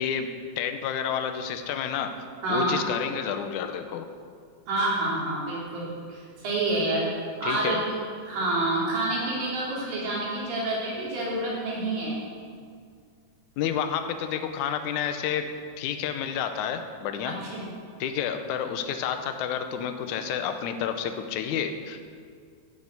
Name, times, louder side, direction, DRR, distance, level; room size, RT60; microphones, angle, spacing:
voice 1, 0.0-2.1 2.5-4.1 7.4-7.8 13.6-15.5 15.8-17.4 18.0-22.1, left 8 dB, 75° left, 7 dB, 2.0 m, -30 dB
voice 2, 2.4-2.8 4.7-7.1 7.4-7.8 8.2-12.2 17.3-17.7, right 2 dB, 80° right, -6 dB, 4.8 m, -28 dB
13.5 x 6.4 x 8.1 m, 2.1 s
omnidirectional pair, 4.0 m